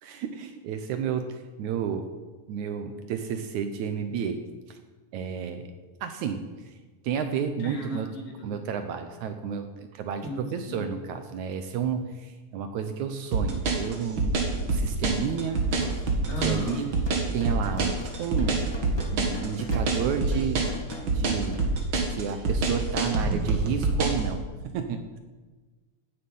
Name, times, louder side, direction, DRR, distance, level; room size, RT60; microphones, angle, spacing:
voice 1, 0.0-2.1 2.5-4.4 4.7-4.8 5.1-5.7 6.0-6.7 7.0-8.1 8.4-14.3 14.6-15.6 15.9-16.0 16.4-16.9 17.3-18.6 19.1-20.7 21.0-21.7 22.1-25.2, right 7 dB, 70° right, 7 dB, 2.0 m, -31 dB
voice 2, 7.6-8.6 10.2-10.9 16.3-16.8, equal, 75° left, 0 dB, 4.3 m, -35 dB
sound 1, 13.3-24.2, right 3 dB, 45° right, 2.1 m, -25 dB
sound 2, 15.5-21.6, left 1 dB, 40° left, 0.3 m, -42 dB
16.5 x 10.0 x 5.5 m, 1.3 s
omnidirectional pair, 3.9 m